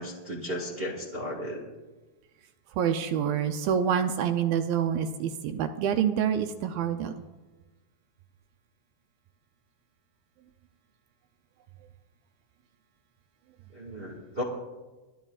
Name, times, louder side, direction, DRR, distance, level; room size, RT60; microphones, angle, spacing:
voice 1, 0.0-1.6 13.7-14.4, equal, 35° right, -2 dB, 0.9 m, -35 dB
voice 2, 2.8-7.1, right 8 dB, 80° right, 7 dB, 2.3 m, -27 dB
29.5 x 11.5 x 2.4 m, 1.2 s
omnidirectional pair, 4.5 m